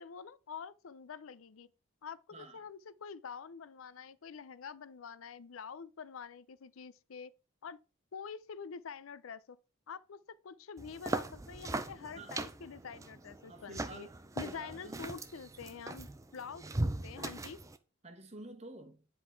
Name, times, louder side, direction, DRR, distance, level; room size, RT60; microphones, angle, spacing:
voice 1, 0.0-1.7 2.0-7.3 7.6-7.8 8.1-9.6 9.9-14.1 14.4-17.6, left 6 dB, 80° left, 0.5 m, -46 dB
voice 2, 2.3-2.6 12.1-12.4 13.5-15.1 16.6-16.9 18.0-19.1, right 2 dB, 30° right, 1.2 m, -50 dB
sound 1, 10.8-17.8, right 2 dB, 15° right, 0.4 m, -39 dB
9.9 x 3.8 x 4.5 m
head